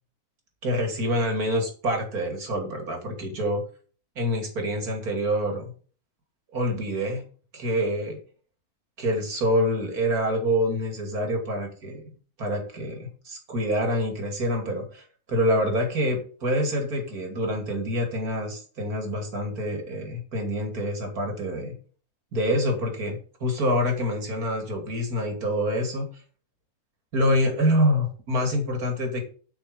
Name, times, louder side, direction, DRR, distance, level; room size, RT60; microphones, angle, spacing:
voice 1, 0.6-3.6 4.2-5.7 6.5-7.2 7.5-8.2 9.0-12.1 12.4-21.7 22.3-26.1 27.1-29.2, equal, 90° right, 3 dB, 3.1 m, -26 dB
8.5 x 5.9 x 6.6 m, 0.41 s
omnidirectional pair, 1.5 m